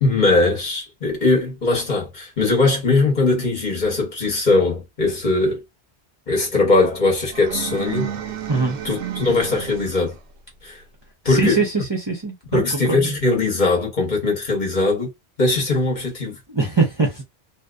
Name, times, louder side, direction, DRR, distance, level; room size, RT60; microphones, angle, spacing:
voice 1, 0.0-5.6 6.3-8.1 8.8-10.1 10.6-10.8 11.2-11.6 12.5-15.1 15.4-16.3, left 3 dB, 45° left, 0.9 m, -20 dB
sound 1, 7.3-10.2, right 9 dB, 80° right, 0.9 m, -31 dB
voice 2, 11.3-12.6 12.9-13.2 16.5-17.2, right 4 dB, 30° right, 0.6 m, -22 dB
2.6 x 2.0 x 2.3 m
omnidirectional pair, 1.1 m